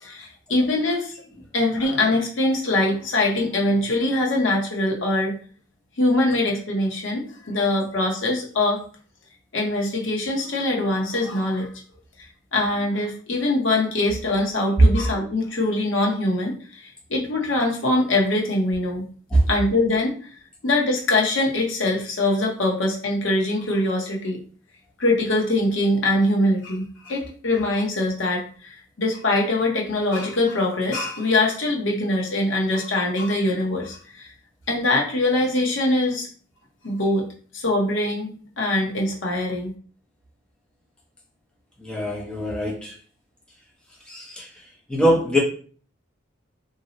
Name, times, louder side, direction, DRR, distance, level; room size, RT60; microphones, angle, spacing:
voice 1, 0.0-1.2 1.5-5.4 6.0-8.8 9.5-11.7 12.5-19.1 19.5-20.2 20.6-24.4 25.0-34.3 34.7-36.3 36.8-37.3 37.5-38.3 38.6-39.7, left 2 dB, 65° left, -1 dB, 0.8 m, -23 dB
voice 2, 41.8-42.9 44.1-44.5 44.9-45.4, right 1 dB, 5° left, -3 dB, 0.5 m, -20 dB
2.6 x 2.0 x 3.8 m, 0.42 s
head